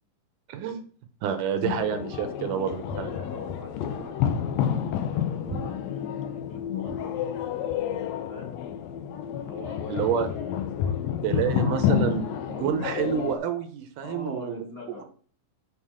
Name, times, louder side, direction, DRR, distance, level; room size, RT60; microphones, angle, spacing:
voice 1, 0.5-0.8 1.2-3.1 9.9-10.3 11.2-12.2 12.6-14.6, right 8 dB, 80° right, 8 dB, 2.4 m, -28 dB
sound 1, 1.6-13.4, left 9 dB, 80° left, 1.5 m, -29 dB
Walk footsteps, 2.7-7.2, right 1 dB, 20° right, 1.0 m, -41 dB
voice 2, 3.1-7.2 8.1-8.5 9.3-11.1 11.3-13.0 14.0-15.0, left 2 dB, 30° left, -3 dB, 1.1 m, -44 dB
7.4 x 4.0 x 4.9 m, 0.44 s
omnidirectional pair, 3.7 m